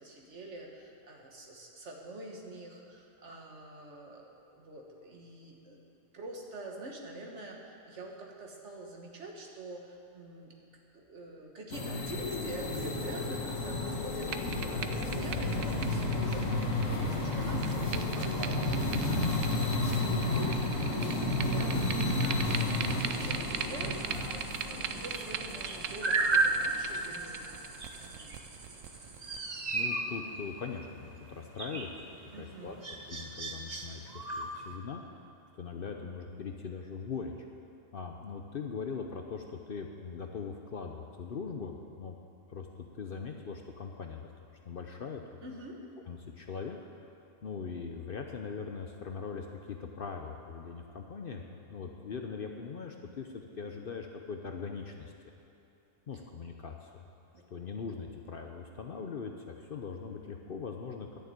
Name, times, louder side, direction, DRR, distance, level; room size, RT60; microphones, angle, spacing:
voice 1, 0.0-5.8 6.1-10.5 10.9-19.7 20.1-27.5 28.0-28.4 32.3-32.8 45.4-45.8 57.3-57.5, right 1 dB, 65° right, 0 dB, 1.8 m, -46 dB
sound 1, 11.7-27.0, left 2 dB, 85° left, 1.7 m, -32 dB
sound 2, 14.1-29.4, right 8 dB, 90° right, 1.0 m, -41 dB
voice 2, 19.4-19.9 29.7-31.9 32.4-32.8 33.1-35.0 35.6-37.3 37.9-42.1 42.5-42.7 42.9-44.3 44.7-45.4 46.1-46.8 47.4-55.1 56.1-56.9 57.5-59.3 59.6-61.1, left 5 dB, 55° left, 3 dB, 0.8 m, -41 dB
sound 3, 22.5-34.7, right 3 dB, 35° right, 1.0 m, -36 dB
11.5 x 6.7 x 9.2 m, 3.0 s
omnidirectional pair, 1.3 m